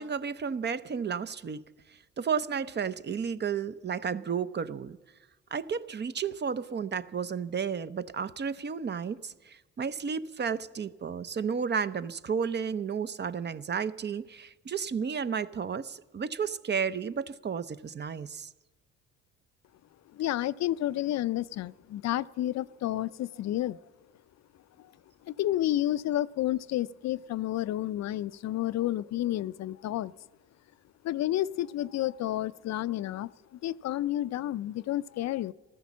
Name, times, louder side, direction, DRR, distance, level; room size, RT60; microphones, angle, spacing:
voice 1, 0.0-1.6 2.2-5.0 5.5-18.5, right 6 dB, 35° right, 0.6 m, -32 dB
voice 2, 20.1-23.8 24.8-24.9 25.2-30.1 31.0-35.5, left 13 dB, 60° left, 0.4 m, -30 dB
14.5 x 13.0 x 7.3 m
cardioid pair, 90°, 30 cm